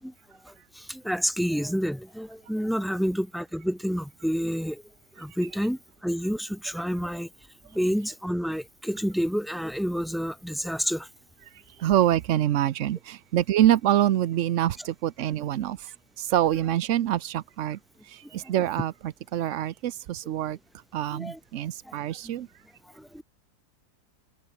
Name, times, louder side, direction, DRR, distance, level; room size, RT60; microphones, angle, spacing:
voice 1, 0.4-4.8 5.2-7.3 7.7-11.1 14.8-14.9 15.3-15.4 18.4-18.6 21.1-21.4 21.8-22.0 22.2-22.3 22.9-23.2, equal, ahead, 4.7 m, -29 dB
voice 2, 11.8-15.8 16.3-17.8 18.3-18.9 19.3-20.6 20.9-22.5, right 12 dB, 60° right, 0.9 m, -25 dB
omnidirectional pair, 1.7 m